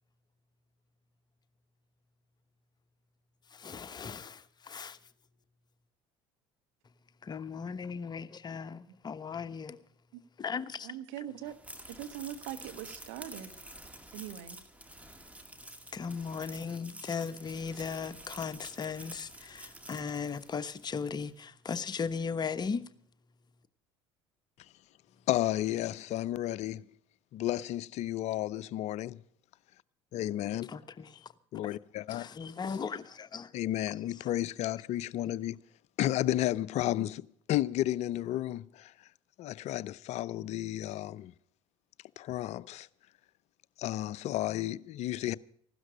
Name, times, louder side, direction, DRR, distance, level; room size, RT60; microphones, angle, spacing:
voice 1, 3.5-5.0 7.2-9.8 10.4-10.9 15.9-22.8 30.7-31.2 32.1-33.5 33.9-34.0, left 5 dB, 30° left, 1.2 m, -37 dB
voice 2, 10.8-11.5 11.9-13.6 14.1-14.6, right 11 dB, 70° right, 1.5 m, -42 dB
sound 1, 11.5-21.0, right 1 dB, 10° right, 2.2 m, -49 dB
voice 3, 25.3-26.8 27.3-29.2 30.1-30.7 31.5-32.3 33.5-35.6 36.0-38.9 39.4-41.3 42.2-42.9 43.8-45.4, left 14 dB, 50° left, 0.6 m, -32 dB
16.0 x 12.5 x 5.2 m
hypercardioid pair, 65°, 14 cm